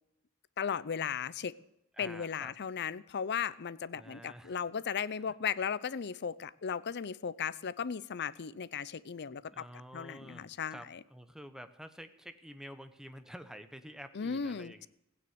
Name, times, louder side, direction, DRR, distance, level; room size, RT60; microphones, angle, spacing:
voice 1, 0.6-1.5 2.0-9.7 9.9-11.0 14.1-14.9, left 7 dB, 50° left, 18 dB, 0.6 m, -36 dB
voice 2, 1.9-2.5 3.9-4.7 5.2-5.3 9.5-14.9, equal, 5° right, 9 dB, 1.0 m, -49 dB
16.0 x 9.5 x 8.0 m, 0.85 s
head